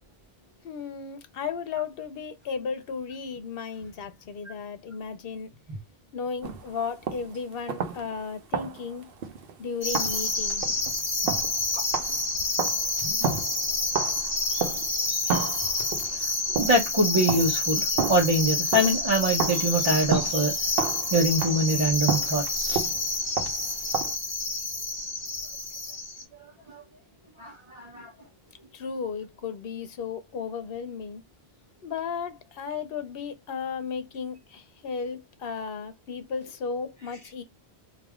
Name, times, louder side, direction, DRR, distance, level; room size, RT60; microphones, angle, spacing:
voice 1, 0.6-5.5 6.1-9.0 9.6-10.6 12.3-12.7 28.7-31.2 31.8-37.4, left 5 dB, 65° left, 0.9 m, -34 dB
sound 1, 6.4-7.4 7.7-8.2 8.5-9.6 9.9-15.0 15.3-16.9 17.3-19.1 19.4-24.1, right 5 dB, 65° right, 0.8 m, -32 dB
sound 2, 9.8-26.2, left 3 dB, 30° left, 0.8 m, -28 dB
voice 2, 13.0-13.4 16.5-20.5 21.1-22.8 26.7-26.8 27.4-28.1, right 1 dB, 30° right, 0.8 m, -25 dB
3.3 x 2.4 x 3.5 m
omnidirectional pair, 1.1 m